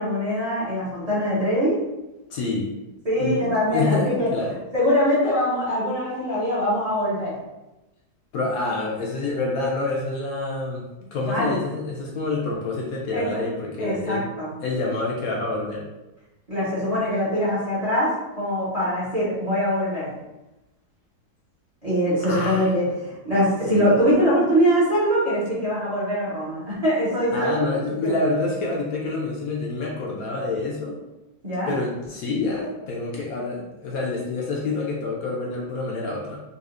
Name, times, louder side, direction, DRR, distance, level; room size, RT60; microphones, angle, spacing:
voice 1, 0.0-1.8 3.0-4.3 4.7-7.3 11.2-11.5 13.1-13.4 13.8-14.5 16.5-20.1 21.8-27.5 28.0-28.2 31.4-31.7, equal, 30° right, -9 dB, 0.7 m, -23 dB
voice 2, 2.3-2.7 3.2-4.6 8.3-14.3 14.6-15.8 22.2-22.9 23.7-24.0 27.3-31.0 31.7-36.4, left 3 dB, 70° left, -2 dB, 0.9 m, -27 dB
4.0 x 2.4 x 2.5 m, 1.0 s
omnidirectional pair, 1.8 m